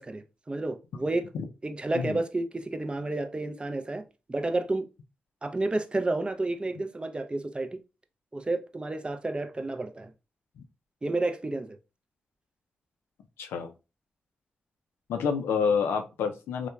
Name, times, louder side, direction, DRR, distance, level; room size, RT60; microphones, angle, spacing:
voice 1, 0.0-1.3 1.6-4.9 5.4-7.8 8.3-10.1 11.0-11.8, right 2 dB, 25° right, 0.4 m, -31 dB
voice 2, 13.4-13.7 15.1-16.7, left 6 dB, 90° left, 0.4 m, -28 dB
2.9 x 2.1 x 2.2 m
supercardioid pair, 45°, 4 cm